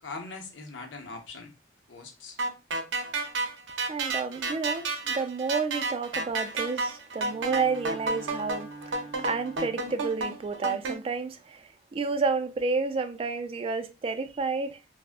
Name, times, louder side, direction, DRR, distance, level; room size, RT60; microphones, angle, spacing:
voice 1, 0.0-1.5 1.9-2.4 8.2-8.3, left 3 dB, 85° left, 0.7 m, -41 dB
sound 1, 2.4-11.0, right 3 dB, 85° right, 0.6 m, -31 dB
voice 2, 3.9-14.8, right 4 dB, 30° right, 0.3 m, -30 dB
Bowed string instrument, 7.2-10.3, right 3 dB, 25° left, 1.2 m, -45 dB
3.5 x 2.0 x 2.4 m
head